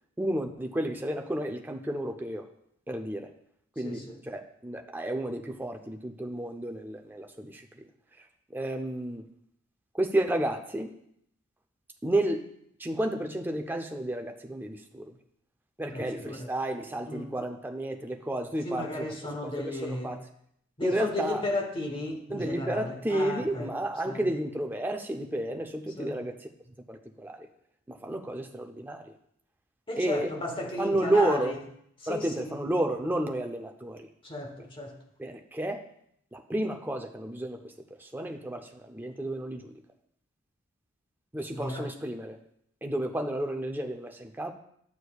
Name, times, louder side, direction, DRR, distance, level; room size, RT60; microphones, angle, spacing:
voice 1, 0.2-2.5 2.9-3.3 3.8-7.7 8.5-9.2 9.9-10.9 12.0-12.5 12.8-15.1 15.8-20.2 20.8-21.4 22.3-26.5 26.9-27.5 27.9-29.1 30.0-30.3 30.8-31.5 32.1-34.1 35.2-35.8 36.3-37.6 38.0-39.7 41.3-42.4 42.8-44.5, right 1 dB, 10° right, 3 dB, 0.5 m, -31 dB
voice 2, 3.8-4.2 15.9-16.5 17.1-17.3 18.6-20.2 20.8-23.7 24.0-24.2 26.0-26.2 29.9-31.6 32.0-32.6 34.2-34.9 41.5-41.9, left 2 dB, 25° left, 1 dB, 1.1 m, -35 dB
9.5 x 6.6 x 2.3 m, 0.71 s
head